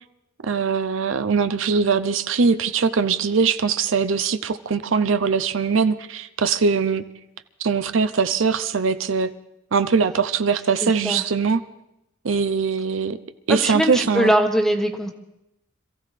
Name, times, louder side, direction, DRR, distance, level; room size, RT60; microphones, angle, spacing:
voice 1, 0.4-7.0 7.6-9.3 9.7-11.6 12.2-13.2 13.5-14.3, right 5 dB, 65° right, 11 dB, 0.6 m, -21 dB
voice 2, 10.8-11.2 13.5-15.1, equal, ahead, 4 dB, 1.2 m, -21 dB
26.5 x 15.0 x 3.3 m, 0.87 s
head